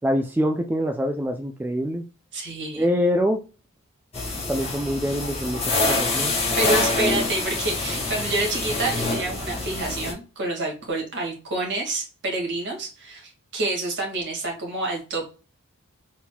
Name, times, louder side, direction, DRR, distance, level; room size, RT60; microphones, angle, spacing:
voice 1, 0.0-2.0 2.8-3.4 4.5-6.3, equal, 10° right, 4 dB, 0.3 m, -25 dB
voice 2, 2.3-2.9 6.6-15.3, right 2 dB, 55° right, 0 dB, 1.8 m, -28 dB
sound 1, 4.1-10.1, left 2 dB, 30° left, 1.5 m, -26 dB
4.2 x 4.0 x 2.2 m, 0.33 s
head